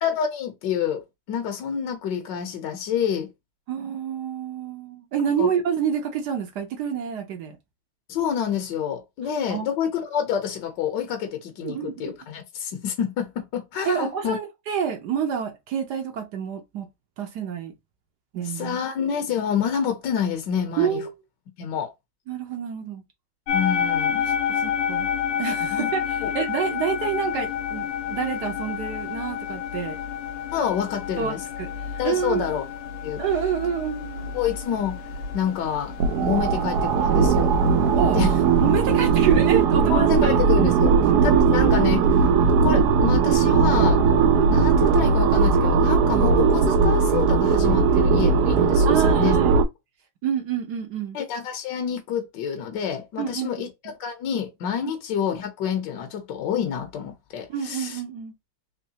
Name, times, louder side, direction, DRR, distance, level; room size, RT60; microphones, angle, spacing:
voice 1, 0.0-3.3 5.4-5.5 8.1-14.4 18.4-21.0 21.6-21.9 23.5-24.2 25.7-25.9 26.2-26.3 30.5-31.4 32.0-32.6 33.0-33.2 34.3-35.0 35.3-37.5 38.1-38.4 38.9-39.1 39.9-44.0 44.5-49.4 51.1-58.0, left 8 dB, 65° left, 1.3 m, -28 dB
voice 2, 3.7-7.6 9.5-9.7 11.6-12.1 13.8-16.9 17.2-17.7 18.3-18.8 20.8-21.1 22.3-23.0 24.2-25.1 25.4-30.0 31.2-32.5 33.2-34.4 37.9-38.2 38.6-40.4 48.9-49.6 50.2-51.2 53.2-53.7 54.8-54.9 57.5-58.3, right 7 dB, 65° right, 1.0 m, -28 dB
sound 1, 23.5-39.6, left 8 dB, 90° left, 1.6 m, -30 dB
sound 2, 34.8-34.9 35.1-35.3 35.7-49.6, right 5 dB, 85° right, 0.8 m, -18 dB
3.7 x 3.1 x 2.8 m
omnidirectional pair, 2.3 m